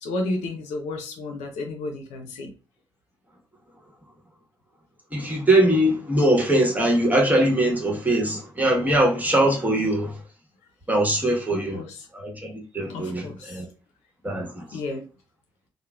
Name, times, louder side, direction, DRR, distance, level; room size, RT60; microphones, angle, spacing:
voice 1, 0.0-2.5 11.5-12.1 12.9-13.6 14.7-15.1, left 2 dB, 70° left, 0.6 m, -32 dB
voice 2, 5.1-10.1 10.9-11.8 12.1-13.7 14.2-14.6, right 1 dB, 15° right, 1.1 m, -22 dB
2.9 x 2.0 x 2.3 m
hypercardioid pair, 45°, 12 cm